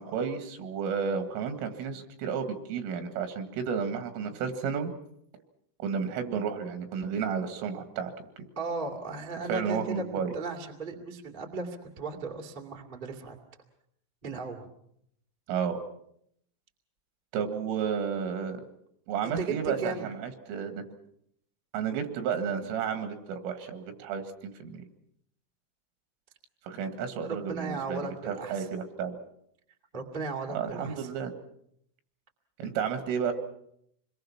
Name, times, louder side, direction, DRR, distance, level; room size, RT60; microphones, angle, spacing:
voice 1, 0.0-4.9 5.8-8.1 9.5-10.3 15.5-15.8 17.3-18.6 19.1-20.9 21.7-24.8 26.6-28.0 28.3-29.2 30.5-31.3 32.6-33.3, right 6 dB, 80° right, 8 dB, 4.3 m, -32 dB
voice 2, 8.5-10.0 10.3-13.4 14.2-14.7 19.2-20.1 27.2-28.7 29.9-31.1, right 4 dB, 30° right, 2 dB, 0.9 m, -36 dB
27.0 x 22.5 x 5.9 m, 0.72 s
omnidirectional pair, 5.8 m